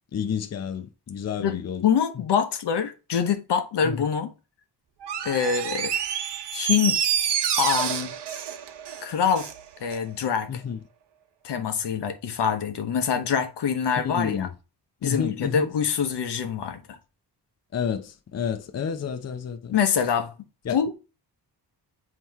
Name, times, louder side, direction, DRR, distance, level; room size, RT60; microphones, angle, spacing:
voice 1, 0.1-1.8 3.8-4.0 10.5-10.8 14.0-14.5 15.0-15.7 17.7-19.7 20.6-20.8, left 7 dB, 40° left, 0.7 m, -30 dB
voice 2, 1.4-4.3 5.2-5.9 6.5-7.1 7.6-8.1 9.0-9.5 9.8-10.6 11.4-14.5 15.0-17.0 19.7-20.3 20.7-20.9, left 7 dB, 85° left, 1.0 m, -25 dB
Door, 5.0-9.6 9.9-10.0, right 8 dB, 80° right, 0.8 m, -28 dB
7.5 x 3.0 x 4.6 m
wide cardioid pair, 120°, 40 cm